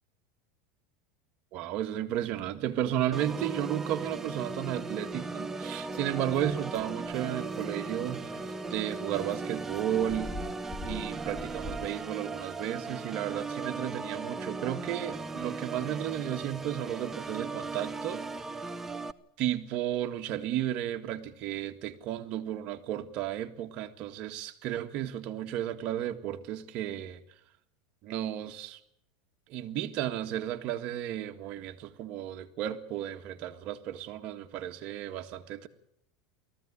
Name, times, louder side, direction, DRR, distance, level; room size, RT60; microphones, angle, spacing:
voice 1, 1.5-8.4 8.7-10.4 10.8-18.3 19.4-27.2 28.0-28.8 29.5-35.7, right 11 dB, 50° right, 1.8 m, -33 dB
Organ, 3.1-19.1, right 3 dB, 15° right, 0.8 m, -37 dB
sound 1, 5.7-11.9, left 2 dB, 15° left, 1.8 m, -46 dB
18.5 x 15.0 x 9.9 m
supercardioid pair, 125°, 2 cm